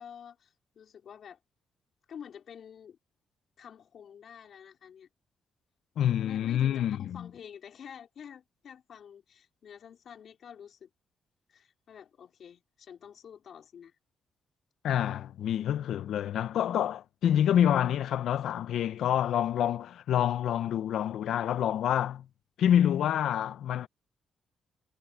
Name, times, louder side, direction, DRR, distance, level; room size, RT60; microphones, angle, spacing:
voice 1, 0.0-1.4 2.1-3.0 3.6-5.1 6.2-10.9 11.5-13.9, left 8 dB, 55° left, 4.7 m, -49 dB
voice 2, 6.0-7.3 14.8-22.2 22.6-23.9, left 10 dB, 80° left, 0.8 m, -27 dB
cardioid pair, 130°, 0 cm